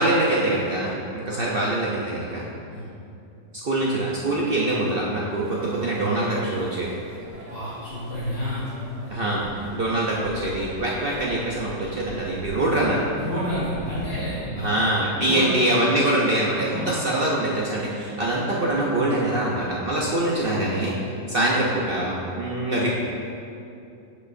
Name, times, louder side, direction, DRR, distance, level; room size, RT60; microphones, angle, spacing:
voice 1, 0.0-2.5 3.6-7.0 9.1-9.5 9.7-13.0 14.5-20.9 21.3-22.9, right 1 dB, 60° right, -4 dB, 0.6 m, -24 dB
sound 1, 5.4-14.1, right 2 dB, 85° right, 1.6 m, -42 dB
voice 2, 7.5-8.7 12.5-12.7 13.2-14.8 15.3-15.5 16.7-16.9, equal, 70° left, -11 dB, 2.2 m, -30 dB
10.5 x 5.3 x 2.6 m, 2.6 s
omnidirectional pair, 1.8 m